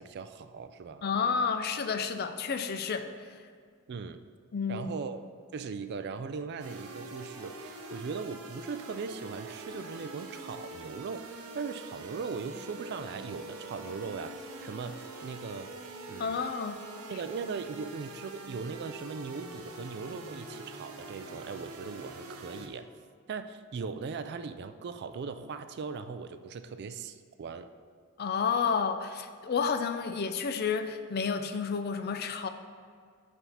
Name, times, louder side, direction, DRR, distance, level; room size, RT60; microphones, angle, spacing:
voice 1, 0.0-1.1 3.9-4.2 4.7-5.2 5.5-15.7 16.1-16.4 17.1-22.9 23.3-27.7, right 5 dB, 50° right, 10 dB, 0.4 m, -39 dB
voice 2, 1.0-3.1 4.5-5.0 16.2-16.8 28.2-32.5, left 5 dB, 45° left, 9 dB, 0.4 m, -30 dB
sound 1, 6.6-22.7, right 2 dB, 85° right, 0.8 m, -44 dB
8.3 x 3.6 x 5.5 m, 2.1 s
head